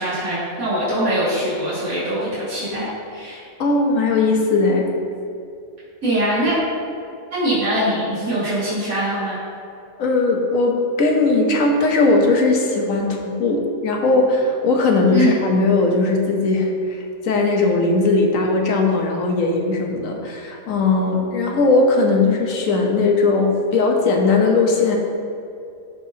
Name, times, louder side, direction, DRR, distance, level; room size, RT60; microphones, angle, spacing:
voice 1, 0.0-3.4 6.0-6.5 7.3-9.4 15.1-15.4, right 1 dB, 85° right, -12 dB, 2.5 m, -22 dB
voice 2, 3.6-4.9 10.0-25.0, left 3 dB, 75° left, 1 dB, 1.3 m, -18 dB
13.5 x 4.5 x 2.8 m, 2.5 s
omnidirectional pair, 1.4 m